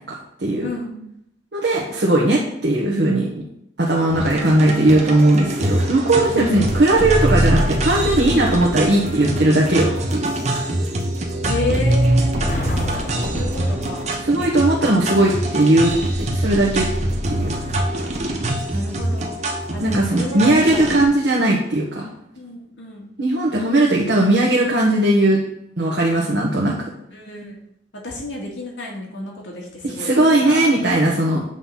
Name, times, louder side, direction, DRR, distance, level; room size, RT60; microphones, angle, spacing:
voice 1, 0.6-1.0 6.3-6.6 11.5-12.8 13.2-14.2 18.7-19.4 19.7-21.0 22.4-23.1 23.7-23.8 27.1-27.6 28.0-30.7, left 1 dB, 80° left, -2 dB, 2.2 m, -31 dB
voice 2, 1.5-3.4 3.8-10.3 14.2-16.9 17.3-17.5 19.8-22.1 23.2-25.4 25.8-26.8 29.8-31.4, right 1 dB, 60° right, -3 dB, 1.2 m, -18 dB
sound 1, 4.1-21.0, right 1 dB, 35° right, 1.1 m, -23 dB
Explosion, 12.3-14.5, left 1 dB, 40° left, 1.2 m, -31 dB
7.9 x 3.9 x 5.7 m, 0.75 s
head